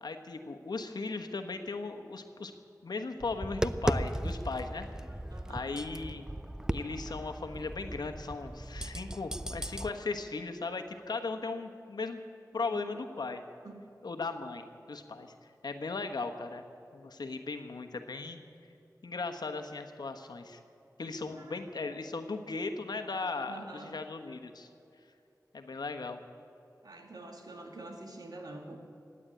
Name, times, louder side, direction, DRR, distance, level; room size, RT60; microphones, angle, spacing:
voice 1, 0.0-2.5 2.8-4.9 5.5-6.3 6.7-12.2 12.5-13.4 14.0-15.3 15.6-16.6 16.9-18.4 19.0-20.6 21.0-24.7 25.5-26.2, left 3 dB, 80° left, 5 dB, 1.2 m, -37 dB
Tap, 3.2-9.9, right 1 dB, 10° right, 0.5 m, -36 dB
voice 2, 5.3-5.7 12.5-13.0 13.6-13.9 21.3-21.7 23.4-24.0 26.8-28.8, right 2 dB, 70° right, 2 dB, 2.2 m, -47 dB
16.0 x 9.8 x 8.9 m, 2.7 s
cardioid pair, 45°, 7 cm